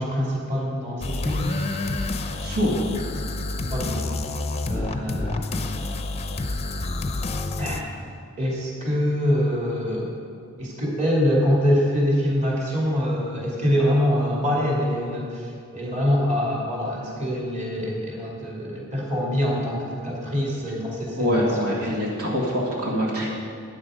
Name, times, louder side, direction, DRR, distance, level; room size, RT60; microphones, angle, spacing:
voice 1, 0.0-1.5 3.7-4.1 4.6-5.8 7.6-7.9 8.4-10.1 10.6-21.4, equal, 30° right, -3 dB, 2.6 m, -24 dB
sound 1, 1.0-7.8, left 2 dB, 30° left, 0.6 m, -29 dB
voice 2, 2.4-2.8 21.2-23.3, equal, 80° right, -3 dB, 2.0 m, -24 dB
13.5 x 9.3 x 5.1 m, 2.3 s
head